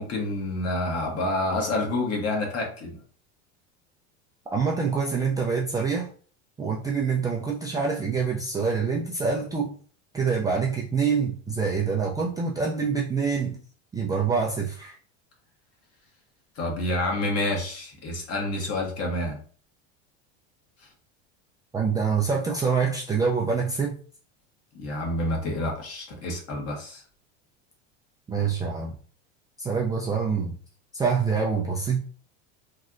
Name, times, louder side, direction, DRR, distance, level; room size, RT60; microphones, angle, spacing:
voice 1, 0.0-3.0 16.6-19.4 24.7-27.0, left 1 dB, 45° left, 0 dB, 1.2 m, -28 dB
voice 2, 4.5-6.1 6.6-9.7 10.1-13.6 13.9-14.9 21.7-23.9 28.3-28.9 29.6-30.5 30.9-32.0, right 5 dB, 10° right, -3 dB, 0.3 m, -26 dB
3.1 x 2.7 x 2.4 m, 0.43 s
supercardioid pair, 115°, 35 cm